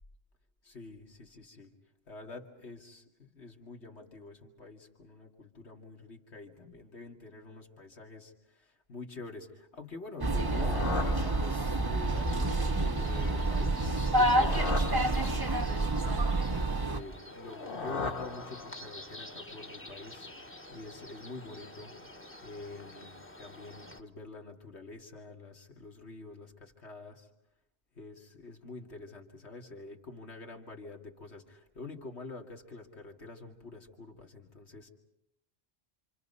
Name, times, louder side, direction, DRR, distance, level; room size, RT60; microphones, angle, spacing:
voice 1, 0.6-1.7 2.1-16.2 16.8-20.3 20.7-21.9 22.4-27.3 27.9-34.9, left 3 dB, 75° left, 2 dB, 2.7 m, -47 dB
sound 1, 10.2-12.0 14.0-15.8 17.3-19.1, left 4 dB, 55° left, 1.3 m, -38 dB
sound 2, 10.2-17.0, right 2 dB, 20° right, 0.9 m, -28 dB
sound 3, 12.1-24.0, left 1 dB, 10° left, 1.0 m, -48 dB
28.0 x 27.5 x 5.5 m, 0.84 s
omnidirectional pair, 1.1 m